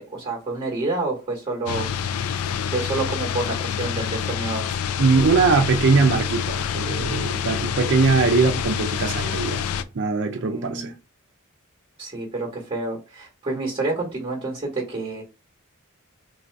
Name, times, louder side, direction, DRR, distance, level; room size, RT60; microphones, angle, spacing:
voice 1, 0.0-1.9 2.7-4.7 10.4-10.9 12.0-15.2, right 2 dB, 30° right, 0.9 m, -28 dB
sound 1, 1.7-9.8, left 7 dB, 85° left, 0.4 m, -27 dB
voice 2, 5.0-9.6 9.9-10.9, right 4 dB, 60° right, 0.5 m, -21 dB
3.1 x 2.6 x 4.5 m
head